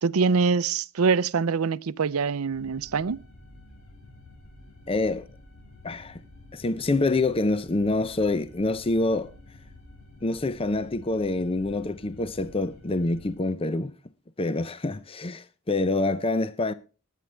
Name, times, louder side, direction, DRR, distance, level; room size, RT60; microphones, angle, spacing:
voice 1, 0.0-3.2, right 5 dB, 80° right, 0.6 m, -24 dB
sound 1, 2.5-13.4, left 1 dB, 70° left, 6.2 m, -50 dB
voice 2, 4.9-5.3 5.8-6.2 6.5-9.3 10.2-13.9 14.4-16.7, left 2 dB, 25° left, 0.6 m, -26 dB
19.5 x 9.3 x 3.3 m
head